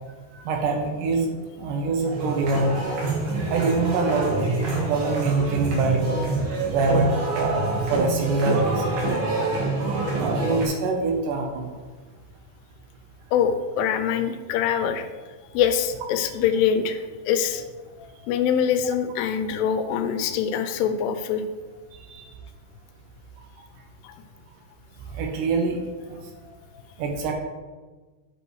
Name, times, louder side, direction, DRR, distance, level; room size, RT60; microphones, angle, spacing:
voice 1, 0.3-1.3 1.6-2.7 3.5-4.5 4.8-6.0 6.7-9.0 10.2-11.7 21.9-22.3 25.1-25.8 26.1-26.2 27.0-27.3, right 3 dB, 80° right, 2 dB, 1.9 m, -24 dB
sound 1, 2.1-10.7, right 3 dB, 55° right, 2.6 m, -26 dB
voice 2, 13.3-15.1 15.5-17.7 18.0-21.4 24.0-24.1, left 8 dB, 80° left, 8 dB, 2.6 m, -24 dB
7.9 x 7.8 x 3.1 m, 1.3 s
omnidirectional pair, 4.8 m